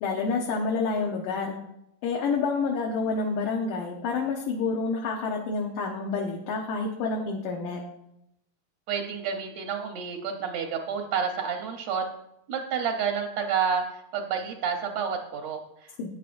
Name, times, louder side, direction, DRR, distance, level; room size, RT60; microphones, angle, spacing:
voice 1, 0.0-1.6 2.0-7.8 16.0-16.1, left 4 dB, 70° left, -1 dB, 2.5 m, -28 dB
voice 2, 8.9-12.1 12.5-16.1, right 6 dB, 70° right, 3 dB, 1.8 m, -30 dB
15.0 x 9.6 x 2.6 m, 0.81 s
omnidirectional pair, 4.2 m